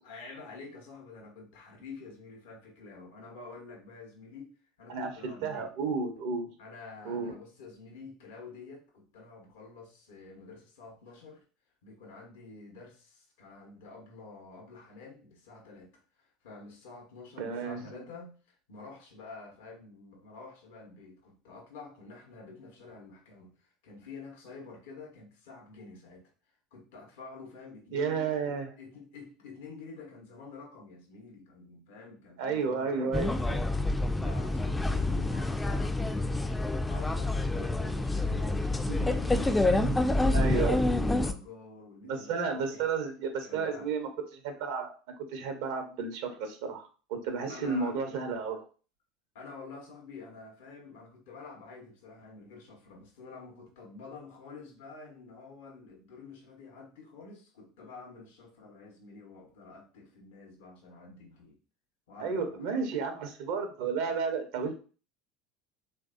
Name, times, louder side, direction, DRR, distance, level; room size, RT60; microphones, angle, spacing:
voice 1, 0.0-5.7 6.6-11.4 11.8-26.3 26.7-28.4 28.8-42.9 43.4-43.9 47.5-48.0 49.3-61.6 62.1-62.8, left 4 dB, 75° left, 0.9 m, -48 dB
voice 2, 4.9-6.5 7.0-7.3 17.4-18.0 27.9-28.7 32.4-33.3 38.9-39.1 39.7-40.0 40.3-40.8 42.0-48.7 62.2-64.7, right 5 dB, 70° right, 0.7 m, -32 dB
sound 1, 33.1-41.3, left 2 dB, 10° left, 0.3 m, -28 dB
3.3 x 2.6 x 2.4 m
hypercardioid pair, 80°, 0 cm